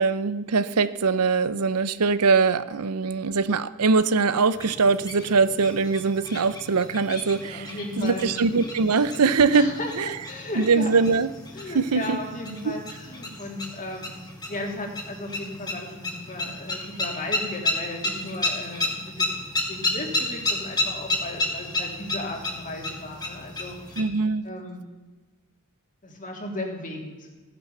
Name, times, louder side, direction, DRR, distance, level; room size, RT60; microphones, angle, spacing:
voice 1, 0.0-9.7 10.0-10.2 10.6-11.3 11.7-12.2 12.6-12.7 24.0-24.5, right 4 dB, 85° right, 15 dB, 0.7 m, -22 dB
sound 1, 4.5-24.0, left 2 dB, 20° left, 2.3 m, -32 dB
voice 2, 7.4-8.3 9.5-10.9 11.5-14.1 14.5-24.0 24.4-24.8 26.0-27.3, left 1 dB, 35° left, 1 dB, 3.2 m, -35 dB
15.5 x 10.0 x 7.2 m, 1.2 s
head